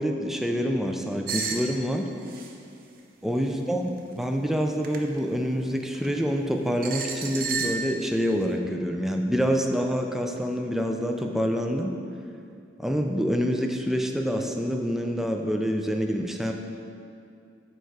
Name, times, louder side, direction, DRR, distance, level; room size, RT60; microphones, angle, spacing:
voice 1, 0.0-2.1 3.2-3.9 4.2-11.9 12.8-16.5, equal, ahead, 3 dB, 0.3 m, -26 dB
sound 1, 1.3-1.7 2.3-2.5 4.0-4.2 4.8-5.0 5.9-6.1 6.8-7.9, right 5 dB, 50° right, 0.6 m, -31 dB
7.0 x 4.5 x 4.7 m, 2.5 s
head